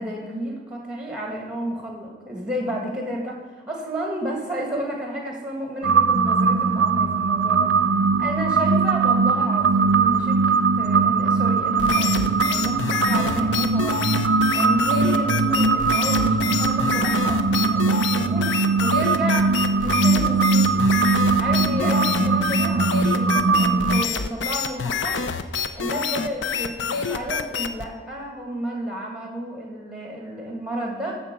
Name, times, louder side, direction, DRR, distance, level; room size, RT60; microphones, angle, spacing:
voice 1, 0.0-3.4 3.7-7.7 8.2-14.0 14.5-18.5 18.8-19.5 19.8-21.0 21.4-25.2 25.7-31.2, right 1 dB, 5° right, 0 dB, 1.7 m, -31 dB
sound 1, 5.8-24.0, right 4 dB, 85° right, 0.5 m, -20 dB
sound 2, 11.8-27.9, left 6 dB, 80° left, 0.5 m, -27 dB
12.5 x 4.4 x 6.8 m, 1.5 s
head